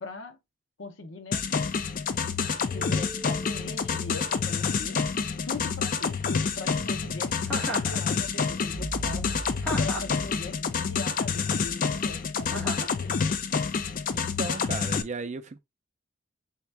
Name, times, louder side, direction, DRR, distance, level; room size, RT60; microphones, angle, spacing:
voice 1, 0.0-0.4 0.8-1.5 2.7-5.0 5.4-9.4 9.8-13.3, left 3 dB, 70° left, 0.7 m, -41 dB
sound 1, 1.3-15.0, left 5 dB, 45° left, 0.4 m, -28 dB
sound 2, 2.7-10.6, right 1 dB, 20° right, 0.9 m, -42 dB
Chuckle chortle, 7.5-8.0 9.6-10.2 12.5-12.9, equal, 10° left, 1.1 m, -33 dB
voice 2, 14.1-15.6, right 3 dB, 35° right, 0.4 m, -36 dB
3.5 x 2.9 x 3.2 m
head